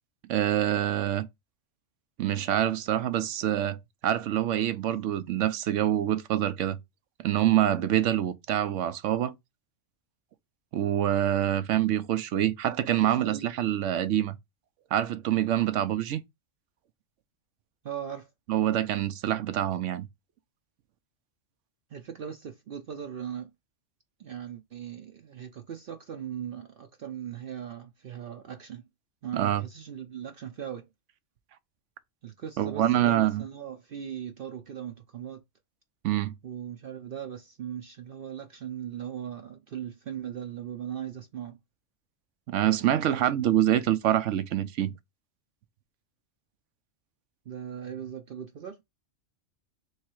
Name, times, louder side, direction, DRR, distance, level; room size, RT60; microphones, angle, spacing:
voice 1, 0.3-1.3 2.2-6.8 7.2-9.3 10.7-14.3 14.9-16.2 18.5-20.0 29.3-29.6 32.6-33.4 36.0-36.3 42.5-44.9, right 12 dB, 85° right, 1.0 m, -26 dB
voice 2, 13.0-13.5 17.8-18.3 21.9-23.5 24.2-28.8 29.2-30.9 32.2-35.4 36.4-41.6 47.5-48.8, right 9 dB, 60° right, 0.7 m, -39 dB
3.6 x 3.2 x 4.4 m
omnidirectional pair, 1.2 m